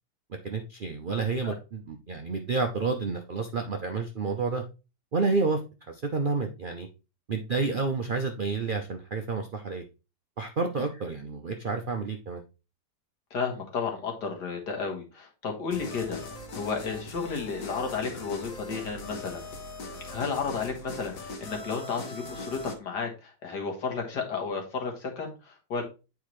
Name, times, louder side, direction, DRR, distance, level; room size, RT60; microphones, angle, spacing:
voice 1, 0.4-4.6 5.1-5.6 5.9-6.9 7.3-9.8 10.4-12.4, right 4 dB, 60° right, 4 dB, 0.5 m, -30 dB
voice 2, 13.3-19.4 20.1-25.8, left 5 dB, 80° left, 2 dB, 2.2 m, -33 dB
sound 1, 15.7-22.8, left 2 dB, 55° left, 1.4 m, -40 dB
8.6 x 4.7 x 3.1 m, 0.30 s
omnidirectional pair, 1.8 m